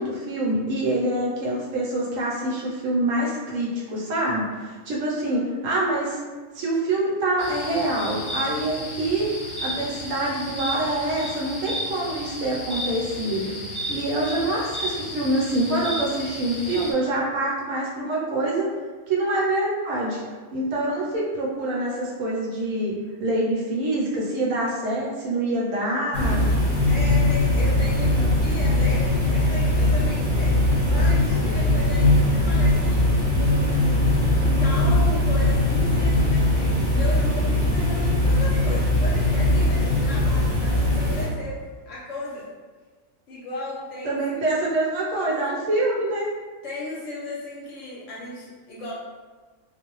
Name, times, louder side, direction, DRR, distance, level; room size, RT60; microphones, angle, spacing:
voice 1, 0.0-6.2 6.5-9.3 9.6-13.5 13.9-18.7 19.1-20.2 20.5-22.9 23.2-26.5 44.0-46.3, right 1 dB, 70° right, -4 dB, 0.9 m, -25 dB
sound 1, 7.4-16.9, equal, 25° left, 0.7 m, -33 dB
sound 2, 26.1-41.3, left 1 dB, 45° right, 0.8 m, -20 dB
voice 2, 26.9-33.0 33.3-41.6 41.8-42.4 43.3-44.4 45.3-45.5 46.6-48.9, left 2 dB, 65° left, -6 dB, 0.9 m, -35 dB
2.5 x 2.0 x 2.9 m, 1.4 s
omnidirectional pair, 1.5 m